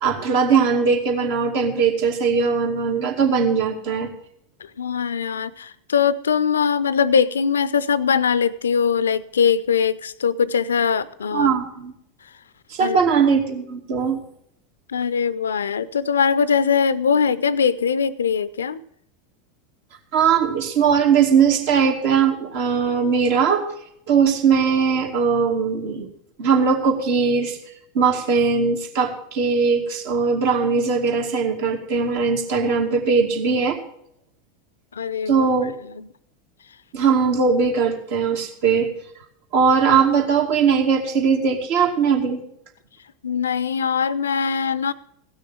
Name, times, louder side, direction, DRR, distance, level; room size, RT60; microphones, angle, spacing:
voice 1, 0.0-4.1 11.3-11.9 12.7-14.2 20.1-23.7 24.1-26.1 26.4-27.6 27.9-33.8 35.3-35.7 36.9-38.9 39.5-42.4, right 6 dB, 60° right, 2 dB, 2.4 m, -20 dB
voice 2, 4.8-11.5 12.8-13.0 14.9-18.8 34.9-35.4 36.0-36.1 43.2-44.9, left 6 dB, 80° left, 19 dB, 0.5 m, -21 dB
16.5 x 6.4 x 7.2 m, 0.71 s
figure-of-eight pair, 85°, 0 cm